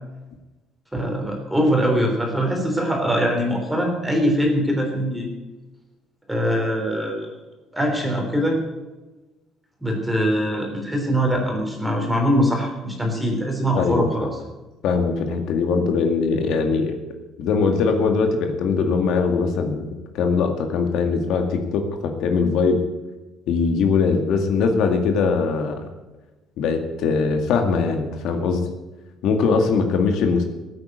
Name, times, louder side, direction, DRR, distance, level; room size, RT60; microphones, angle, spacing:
voice 1, 0.9-5.3 6.3-7.3 7.7-8.6 9.8-14.3, equal, 5° right, 1 dB, 3.4 m, -22 dB
voice 2, 13.8-14.1 14.8-17.0 17.4-22.8 23.5-25.9 26.6-28.7 29.2-30.4, left 5 dB, 70° left, 5 dB, 2.1 m, -21 dB
15.5 x 9.0 x 7.9 m, 1.1 s
cardioid pair, 150°, 0 cm